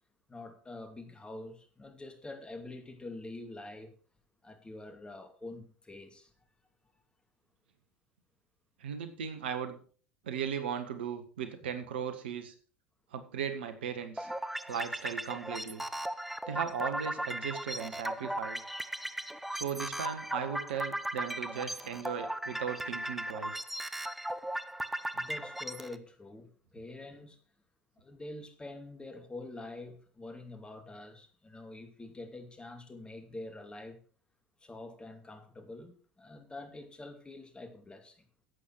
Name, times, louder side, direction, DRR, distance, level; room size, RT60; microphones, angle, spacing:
voice 1, 0.3-3.9 4.4-6.3 25.1-27.4 28.0-34.0 34.6-38.3, left 2 dB, 15° left, 2.6 m, -46 dB
voice 2, 8.8-9.8 10.2-12.5 13.1-14.3 14.7-15.8 16.5-18.6 19.5-23.6, right 7 dB, 70° right, 1.5 m, -37 dB
sound 1, 14.2-26.0, right 1 dB, 5° right, 0.8 m, -37 dB
11.5 x 8.6 x 4.7 m
figure-of-eight pair, 70°, 6 cm